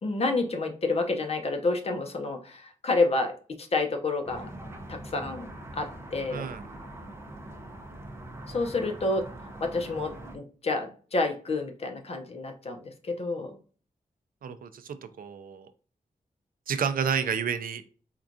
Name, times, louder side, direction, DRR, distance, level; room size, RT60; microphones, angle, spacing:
voice 1, 0.0-4.5 4.9-5.5 5.7-6.5 8.5-9.3 9.6-13.6, left 3 dB, 45° left, 5 dB, 0.7 m, -29 dB
sound 1, 4.3-10.4, right 1 dB, 15° right, 0.5 m, -43 dB
voice 2, 6.3-6.6 14.4-15.7 16.7-17.8, right 7 dB, 75° right, 10 dB, 0.4 m, -30 dB
4.4 x 2.4 x 2.5 m, 0.40 s
wide cardioid pair, 175°, 15 cm